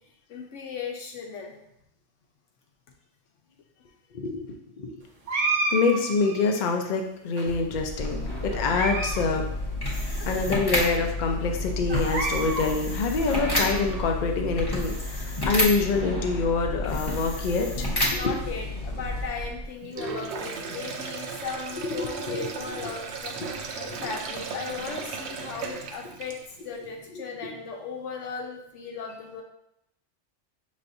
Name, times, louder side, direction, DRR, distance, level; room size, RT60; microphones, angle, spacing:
voice 1, 0.3-1.6 18.1-26.4 26.6-29.4, left 5 dB, 80° left, 1 dB, 1.1 m, -37 dB
voice 2, 4.1-4.9 5.7-9.5 10.2-18.3 21.8-22.5 24.0-24.1, left 4 dB, 55° left, 3 dB, 0.6 m, -26 dB
sound 1, 5.3-6.7 7.4-8.0 8.5-9.2 9.5-9.6 10.3-10.4 10.8-10.9 11.9-12.7 13.2-14.1, right 3 dB, 45° right, 0.5 m, -31 dB
sound 2, 7.8-19.7, left 1 dB, 20° left, 1.0 m, -30 dB
Sink (filling or washing), 19.8-26.7, right 4 dB, 70° right, 0.8 m, -36 dB
5.7 x 3.1 x 2.6 m, 0.77 s
omnidirectional pair, 1.2 m